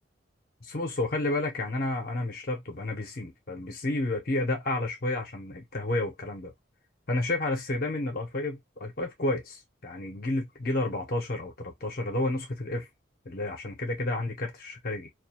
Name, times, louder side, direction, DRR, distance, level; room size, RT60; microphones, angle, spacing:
voice 1, 0.6-6.5 7.1-12.9 13.3-15.1, left 2 dB, 50° left, 0.6 m, -31 dB
2.3 x 2.2 x 2.7 m
head